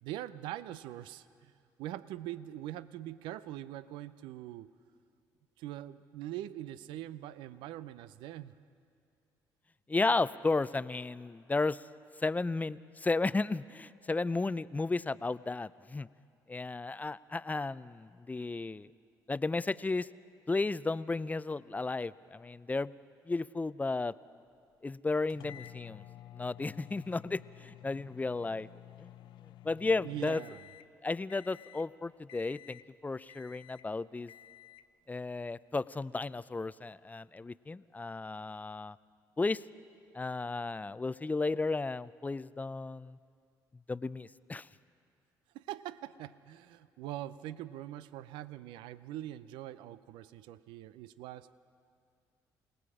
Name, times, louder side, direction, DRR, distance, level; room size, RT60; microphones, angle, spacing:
voice 1, 0.0-1.5 1.8-4.7 5.6-8.5 30.0-30.7 45.5-51.6, right 13 dB, 80° right, 15 dB, 0.6 m, -43 dB
voice 2, 9.9-11.8 12.2-16.1 16.5-18.9 19.3-20.1 20.5-22.9 23.3-24.1 24.8-26.0 26.3-28.7 29.0-29.1 29.6-30.4 31.0-34.3 35.1-39.0 39.4-39.6 40.1-43.2 43.9-44.7, left 3 dB, 20° left, 17 dB, 0.5 m, -34 dB
sound 1, 25.3-31.0 31.3-31.9 32.3-32.9 33.3-33.9 34.3-34.9, left 13 dB, 70° left, 0.5 m, -52 dB
28.5 x 18.5 x 4.9 m, 2.3 s
supercardioid pair, 60°, 8 cm